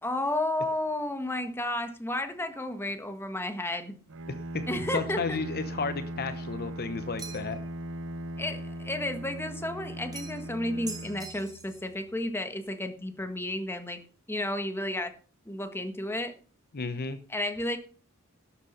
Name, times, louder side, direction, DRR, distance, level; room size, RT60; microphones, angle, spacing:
voice 1, 0.0-3.9 4.7-5.4 8.4-14.0 14.3-15.1 15.5-16.3 17.3-17.8, left 1 dB, 10° left, 7 dB, 1.6 m, -32 dB
Bowed string instrument, 4.1-12.1, equal, 60° right, 0.7 m, -39 dB
voice 2, 4.9-7.6 16.7-17.2, left 4 dB, 45° left, 10 dB, 0.9 m, -33 dB
sound 1, 7.2-7.7 10.1-10.5 10.9-11.8, right 5 dB, 20° right, 2.2 m, -43 dB
12.0 x 8.3 x 5.7 m, 0.40 s
head